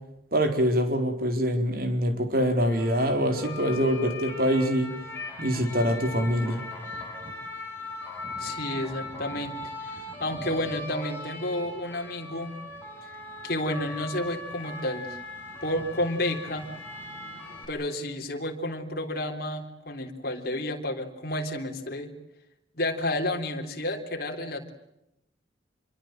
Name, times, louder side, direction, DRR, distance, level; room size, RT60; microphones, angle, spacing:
voice 1, 0.3-4.9 5.4-6.6, equal, 50° right, 6 dB, 4.2 m, -24 dB
sound 1, 2.6-17.7, left 2 dB, 10° left, 6.8 m, -39 dB
voice 2, 8.4-12.5 13.4-15.2 15.6-16.7 17.7-22.1 22.7-24.7, left 1 dB, 50° left, 2 dB, 3.7 m, -31 dB
27.5 x 23.5 x 7.8 m, 0.85 s
head